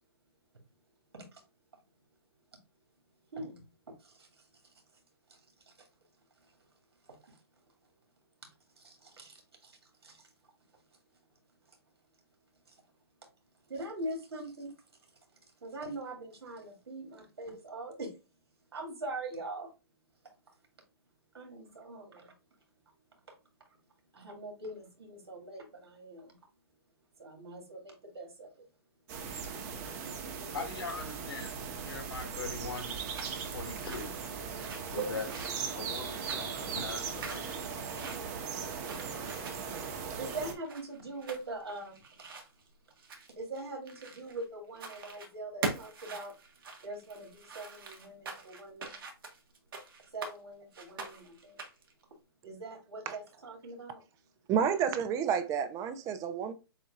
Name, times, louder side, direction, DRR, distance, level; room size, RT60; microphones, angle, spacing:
voice 1, 3.3-3.6 4.0-4.3 5.3-5.4 7.2-7.3 8.8-9.8 10.0-10.2 12.7-12.8 13.7-14.7 15.6-18.1 18.7-19.7 21.3-22.3 24.1-26.3 27.2-28.7 30.2-30.5 35.0-35.2 40.2-42.0 43.4-46.3 46.8-49.0 50.1-51.6 52.4-54.0, right 2 dB, 85° right, 2.5 m, -42 dB
sound 1, 29.1-40.5, right 6 dB, 40° right, 1.3 m, -39 dB
voice 2, 30.5-31.5 31.8-33.0 33.4-34.4 34.9-35.3 35.7-37.7, left 4 dB, 75° left, 2.2 m, -41 dB
sound 2, 32.9-44.4 44.7-45.3 45.6-50.4 50.7-51.9, right 4 dB, 65° right, 1.8 m, -44 dB
voice 3, 54.5-56.5, right 7 dB, 25° right, 0.7 m, -30 dB
7.4 x 2.7 x 2.5 m
hypercardioid pair, 135°, 13 cm